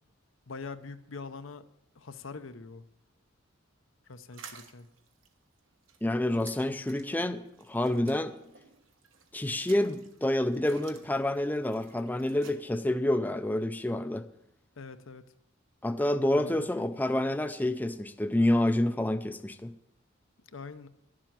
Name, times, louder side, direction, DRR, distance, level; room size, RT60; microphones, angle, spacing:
voice 1, 0.5-1.7 1.9-2.8 4.1-4.9 14.8-15.2 16.3-16.7 20.5-20.9, left 4 dB, 75° left, 0.7 m, -43 dB
sound 1, 4.3-12.5, right 6 dB, 75° right, 1.2 m, -54 dB
voice 2, 6.0-7.4 7.7-8.3 9.3-14.2 15.8-19.7, left 1 dB, 10° left, 0.4 m, -28 dB
11.5 x 7.5 x 7.4 m
head